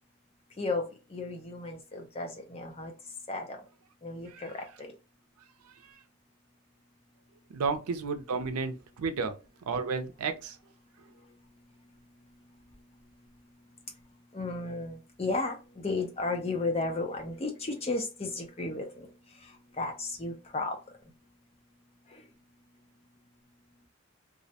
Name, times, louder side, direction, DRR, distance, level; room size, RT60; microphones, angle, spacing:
voice 1, 0.6-2.9 3.3-3.6 4.0-4.9 14.3-19.1 19.4-20.8 22.1-22.3, left 3 dB, 25° left, 0.5 m, -34 dB
voice 2, 5.6-6.0 7.5-9.4 9.7-10.6, right 4 dB, 85° right, 0.4 m, -33 dB
2.3 x 2.0 x 2.7 m
head